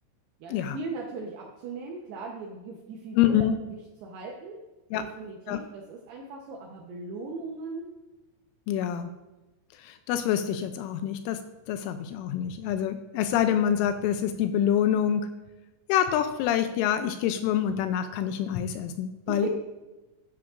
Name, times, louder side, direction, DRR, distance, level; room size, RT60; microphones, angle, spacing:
voice 1, 0.4-4.6 4.9-7.9 8.9-9.0 19.3-19.5, right 3 dB, 80° right, 0 dB, 2.4 m, -38 dB
voice 2, 3.1-3.5 4.9-5.0 5.5-5.6 8.7-9.1 9.8-11.4 11.7-15.3 15.9-19.5, left 10 dB, 85° left, 9 dB, 2.9 m, -26 dB
13.5 x 9.8 x 2.5 m, 1.1 s
omnidirectional pair, 5.8 m